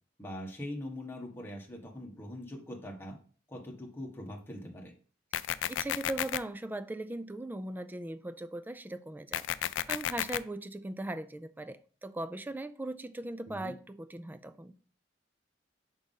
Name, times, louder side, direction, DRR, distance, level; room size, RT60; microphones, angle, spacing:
voice 1, 0.2-3.2 3.5-4.9 13.5-13.7, left 1 dB, 10° left, 1.3 m, -42 dB
sound 1, 5.3-6.4 9.3-10.4, left 11 dB, 80° left, 0.3 m, -32 dB
voice 2, 5.4-14.7, right 1 dB, 10° right, 0.3 m, -39 dB
5.2 x 3.5 x 5.5 m
head